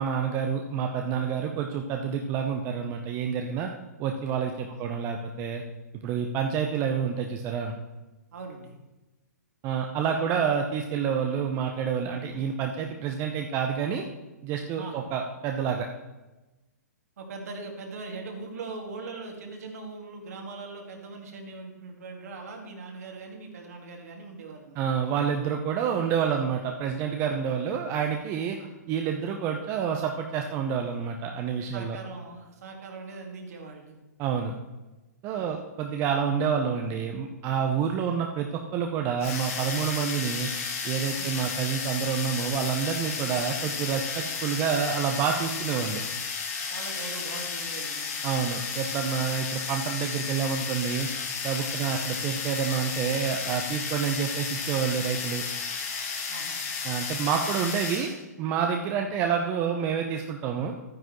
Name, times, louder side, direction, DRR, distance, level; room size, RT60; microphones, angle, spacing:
voice 1, 0.0-3.7 4.0-5.6 5.9-7.7 9.6-14.0 14.4-15.9 24.8-28.6 28.9-32.0 34.2-34.5 35.2-40.5 40.8-46.0 48.2-51.1 51.4-55.4 56.8-60.7, right 7 dB, 30° right, 3 dB, 0.7 m, -28 dB
voice 2, 8.3-8.7 12.3-12.5 14.8-15.0 17.2-24.9 28.6-28.8 31.7-34.0 35.3-35.6 38.1-38.2 41.2-41.3 46.7-48.2 51.8-52.0 56.3-56.6, right 3 dB, 60° right, 2 dB, 2.1 m, -41 dB
sound 1, 39.2-58.2, left 5 dB, 50° left, 2.2 m, -33 dB
11.5 x 9.7 x 3.1 m, 1.1 s
figure-of-eight pair, 120°, 9 cm